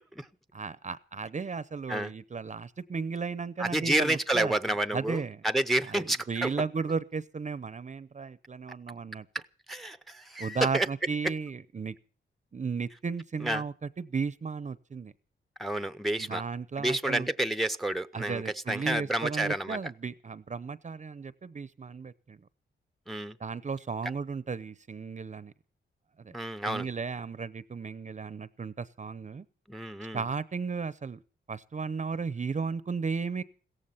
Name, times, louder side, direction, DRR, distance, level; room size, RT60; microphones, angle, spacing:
voice 1, 0.5-4.5 4.9-5.4 5.9-9.3 10.4-12.0 12.5-15.1 16.2-17.3 18.1-22.4 23.4-25.5 26.2-26.3 26.6-29.4 30.1-31.2 31.5-33.4, right 5 dB, 35° right, 0.7 m, -34 dB
voice 2, 3.6-6.5 9.3-9.4 9.7-10.9 11.2-11.3 13.4-13.6 15.6-16.4 16.8-19.8 23.1-23.4 26.3-26.9 29.7-30.2, right 1 dB, ahead, 0.7 m, -30 dB
16.5 x 14.5 x 5.7 m
cardioid pair, 90°, 20 cm